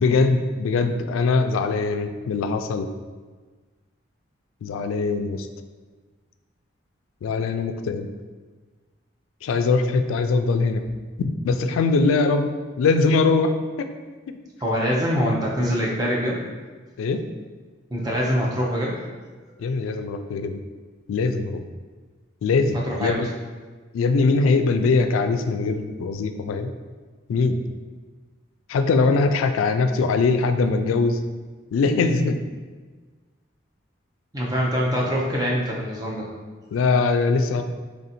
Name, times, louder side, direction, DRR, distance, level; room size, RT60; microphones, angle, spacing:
voice 1, 0.0-2.9 4.6-5.5 7.2-8.1 9.4-10.8 11.2-12.5 12.8-13.9 14.3-14.4 17.0-17.3 19.6-20.6 21.1-21.6 22.4-23.3 23.9-26.7 27.3-27.6 28.7-31.2 31.7-32.4 36.7-37.6, left 4 dB, 90° left, 8 dB, 0.3 m, -21 dB
voice 2, 14.6-16.4 17.9-19.0 22.9-23.2 34.3-36.3, equal, 20° right, -3 dB, 0.6 m, -24 dB
3.4 x 2.6 x 4.1 m, 1.4 s
head